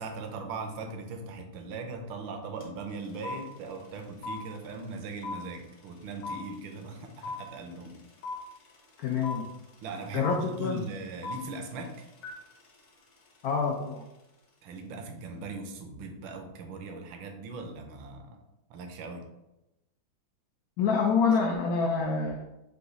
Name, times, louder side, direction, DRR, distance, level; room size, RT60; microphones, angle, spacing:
voice 1, 0.0-8.0 9.8-12.1 14.6-18.4 18.7-19.2, right 3 dB, 80° right, 5 dB, 1.4 m, -39 dB
sound 1, 2.6-2.7 2.9-14.1, left 3 dB, 60° left, 1.4 m, -41 dB
voice 2, 9.0-9.5 10.1-10.8 13.4-14.0 20.8-22.4, left 5 dB, 85° left, 2 dB, 0.8 m, -27 dB
4.9 x 2.3 x 3.9 m, 0.94 s
omnidirectional pair, 2.1 m